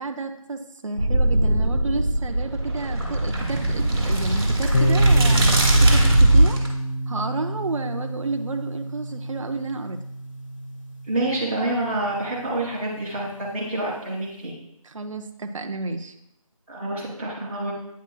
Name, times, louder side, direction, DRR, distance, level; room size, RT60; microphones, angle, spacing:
voice 1, 0.0-6.6 7.1-10.0 14.8-16.1, right 3 dB, 60° right, 5 dB, 0.6 m, -31 dB
sound 1, 1.0-6.7, right 1 dB, 45° right, 2.0 m, -20 dB
sound 2, 4.7-12.4, right 1 dB, 60° left, 1.0 m, -27 dB
voice 2, 11.1-14.5 16.7-17.7, right 1 dB, 20° right, -8 dB, 2.0 m, -27 dB
9.1 x 6.0 x 2.3 m, 0.79 s
figure-of-eight pair, 175°, 18 cm